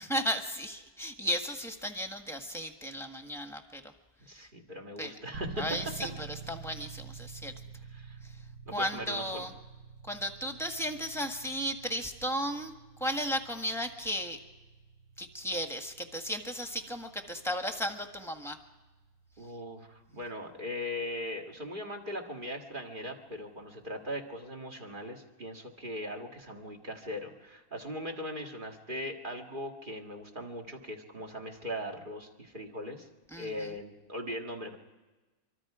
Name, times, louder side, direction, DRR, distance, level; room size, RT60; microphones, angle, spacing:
voice 1, 0.0-3.9 5.0-5.1 5.6-6.1 6.5-7.5 8.2-8.4 8.7-9.5 10.1-12.7 13.0-14.4 15.2-18.6 33.3-33.7, equal, ahead, 5 dB, 1.5 m, -35 dB
voice 2, 4.3-5.6 7.9-8.2 8.7-9.5 19.4-33.1 33.4-34.8, left 1 dB, 35° right, 2 dB, 2.1 m, -39 dB
sound 1, 5.3-22.1, right 6 dB, 90° right, 2.0 m, -49 dB
24.5 x 24.5 x 5.0 m, 1.2 s
omnidirectional pair, 1.5 m